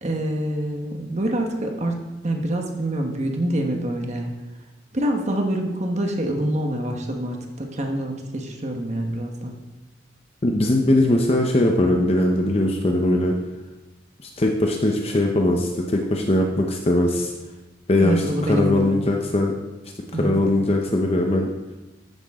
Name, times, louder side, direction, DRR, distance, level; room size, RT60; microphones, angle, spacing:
voice 1, 0.0-4.3 4.9-9.6 18.0-19.0 20.1-20.4, right 1 dB, 35° right, 2 dB, 1.3 m, -26 dB
voice 2, 10.4-13.4 14.2-17.3 17.9-19.5 20.1-21.5, left 1 dB, 30° left, 2 dB, 0.9 m, -20 dB
13.5 x 9.1 x 3.7 m, 1.1 s
head